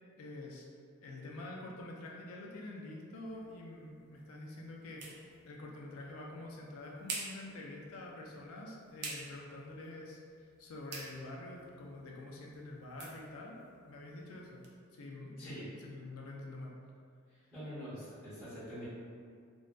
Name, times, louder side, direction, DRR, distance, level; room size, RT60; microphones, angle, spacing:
voice 1, 0.2-0.7 1.0-14.7 14.9-16.7, left 2 dB, 85° left, -1 dB, 0.4 m, -47 dB
sound 1, 3.3-14.8, right 3 dB, 55° right, 0.4 m, -50 dB
voice 2, 17.3-18.9, equal, 5° right, -17 dB, 1.0 m, -45 dB
2.6 x 2.1 x 2.2 m, 2.2 s
head